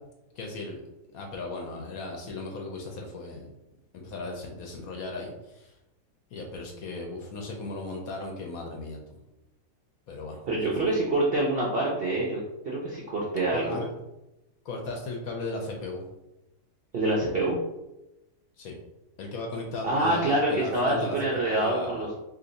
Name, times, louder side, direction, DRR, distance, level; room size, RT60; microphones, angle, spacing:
voice 1, 0.4-0.8 1.1-3.5 3.9-5.7 6.3-9.2 10.1-10.9 13.5-13.9 14.6-16.0 18.6-18.8 19.2-22.1, left 2 dB, 70° left, 1 dB, 1.0 m, -36 dB
voice 2, 10.5-12.4 12.7-13.8 16.9-17.6 19.8-22.2, right 1 dB, 65° right, -3 dB, 0.5 m, -26 dB
2.8 x 2.6 x 3.9 m, 0.95 s
omnidirectional pair, 1.8 m